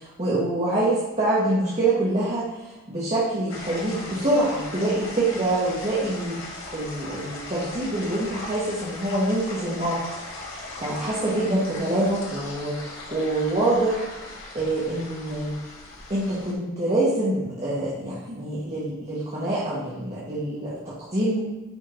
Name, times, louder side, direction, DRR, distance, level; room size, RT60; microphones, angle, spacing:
voice 1, 0.0-2.5 2.9-10.0 10.5-14.3 14.5-15.6 16.1-21.4, right 1 dB, 30° right, -8 dB, 1.7 m, -25 dB
sound 1, 3.5-16.5, left 2 dB, 75° left, 2.0 m, -39 dB
10.5 x 5.0 x 2.9 m, 1.1 s
head